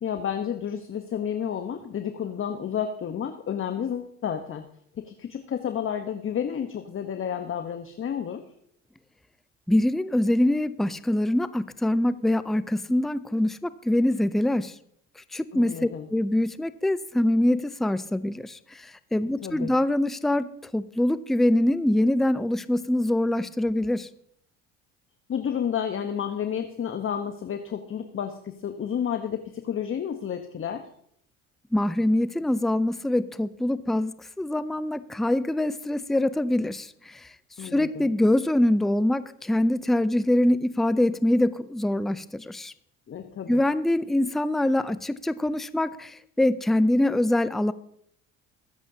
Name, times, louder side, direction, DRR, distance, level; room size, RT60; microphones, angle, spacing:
voice 1, 0.0-4.7 5.0-8.4 15.5-16.1 19.4-19.7 25.3-30.8 37.6-38.1 43.1-43.6, left 8 dB, 35° left, 7 dB, 1.1 m, -31 dB
voice 2, 9.7-14.7 15.2-24.1 31.7-37.3 37.6-42.7 43.5-47.7, left 1 dB, ahead, 14 dB, 0.6 m, -24 dB
23.5 x 8.1 x 2.8 m, 0.69 s
hypercardioid pair, 70°, 35 cm